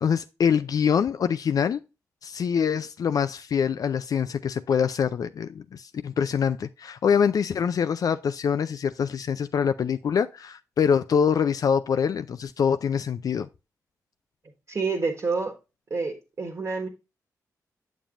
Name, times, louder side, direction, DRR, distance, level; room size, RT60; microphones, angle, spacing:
voice 1, 0.0-1.8 2.2-13.5, left 7 dB, 60° left, 0.4 m, -24 dB
voice 2, 14.7-15.5 15.9-16.9, right 4 dB, 45° right, 1.4 m, -28 dB
7.2 x 7.2 x 2.5 m
supercardioid pair, 55°, 7 cm